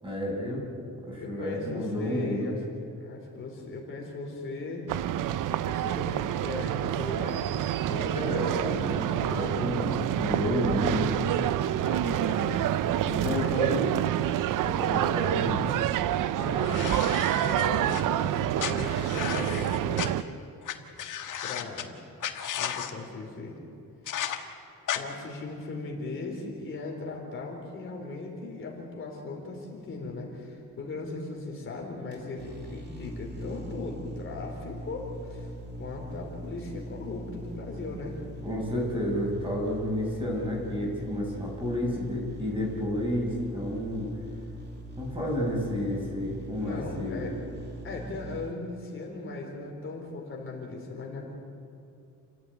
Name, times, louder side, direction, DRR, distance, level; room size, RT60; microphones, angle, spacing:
voice 1, 0.0-0.6 1.0-2.5 7.8-11.1 13.0-13.9 14.6-15.7 38.4-44.1 45.0-47.3, equal, 15° right, -2 dB, 6.3 m, -31 dB
voice 2, 1.2-2.6 3.0-4.8 5.5-7.6 11.8-12.7 13.3-13.7 16.4-17.1 17.3-20.2 21.4-21.9 22.6-23.6 24.9-35.5 35.8-38.2 46.6-47.4 47.8-51.3, left 3 dB, 40° left, -1 dB, 4.1 m, -38 dB
sound 1, 4.9-20.2, right 12 dB, 80° right, 0.7 m, -27 dB
sound 2, 16.6-18.0 18.6-20.1 20.6-20.7 21.0-21.8 22.2-22.9 24.1-24.4 24.9-25.0, left 10 dB, 75° left, 1.7 m, -34 dB
sound 3, 30.4-48.5, right 1 dB, 35° right, 2.8 m, -41 dB
29.0 x 15.0 x 9.5 m, 2.6 s
wide cardioid pair, 170°, 31 cm